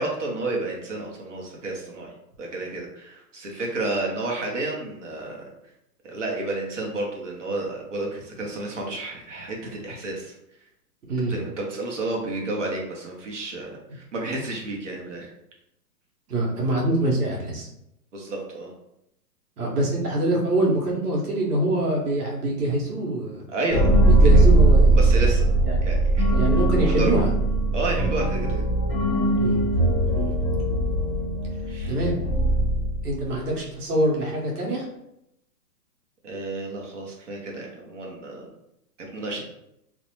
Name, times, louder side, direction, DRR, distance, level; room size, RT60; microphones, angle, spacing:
voice 1, 0.0-2.1 2.4-5.5 6.0-10.3 11.3-15.3 18.1-18.7 23.5-24.1 24.9-25.5 25.8-26.4 26.8-27.2 27.7-28.6 31.7-31.9 36.2-38.5 39.0-39.4, right 2 dB, 50° right, -1 dB, 0.7 m, -31 dB
voice 2, 11.1-11.4 13.9-14.0 16.3-17.7 19.6-23.5 24.1-25.0 25.6-25.8 26.3-27.3 29.4-29.6 30.1-30.3 31.9-32.2 33.0-34.9, right 1 dB, 65° right, -2 dB, 1.0 m, -25 dB
sound 1, 23.7-33.4, right 2 dB, 35° left, 0.6 m, -20 dB
2.6 x 2.0 x 2.9 m, 0.81 s
hypercardioid pair, 180°, 49 cm